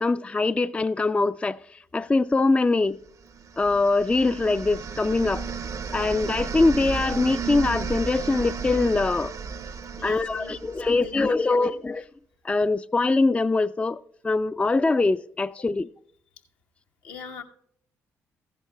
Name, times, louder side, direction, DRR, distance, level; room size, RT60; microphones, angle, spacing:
voice 1, 0.0-1.6 1.9-3.0 3.6-5.4 5.9-9.3 10.0-12.0 12.4-15.9, left 3 dB, 15° left, 0.3 m, -23 dB
sound 1, 3.3-11.2, right 5 dB, 50° right, 0.6 m, -34 dB
voice 2, 10.0-11.6 12.0-12.1 17.0-17.4, left 6 dB, 75° left, 1.0 m, -41 dB
15.0 x 11.0 x 2.2 m
hypercardioid pair, 45°, 7 cm